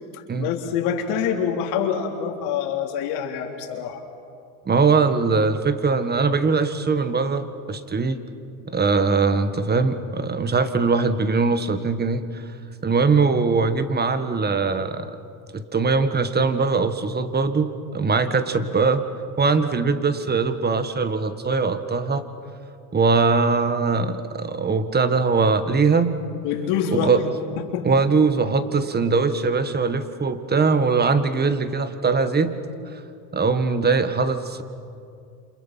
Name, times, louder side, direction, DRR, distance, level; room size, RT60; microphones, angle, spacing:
voice 1, 0.1-4.0 26.4-27.2 27.6-27.9, left 7 dB, 75° left, 2 dB, 3.5 m, -26 dB
voice 2, 4.7-8.2 8.7-12.4 12.8-15.1 15.5-19.0 19.4-22.2 22.9-26.1 26.9-27.2 27.8-32.5 33.3-34.6, right 4 dB, 20° right, 10 dB, 1.6 m, -21 dB
29.0 x 27.5 x 5.9 m, 2.4 s
supercardioid pair, 100°, 44 cm